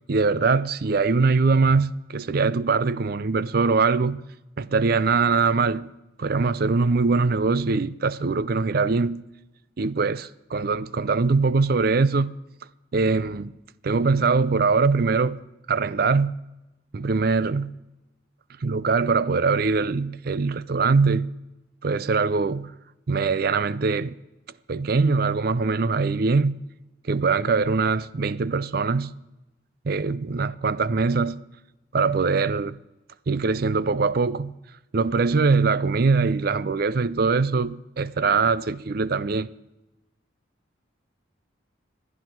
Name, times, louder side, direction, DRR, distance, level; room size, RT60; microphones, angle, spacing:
voice 1, 0.1-4.2 4.6-5.9 6.2-9.2 9.8-12.3 12.9-13.5 13.8-15.4 15.7-16.4 16.9-17.7 18.6-21.3 21.8-22.7 23.1-24.2 24.7-26.6 27.0-29.1 29.8-31.4 31.9-32.8 33.3-34.5 34.9-39.5, right 4 dB, 50° right, 0.5 m, -22 dB
26.5 x 9.9 x 4.6 m
head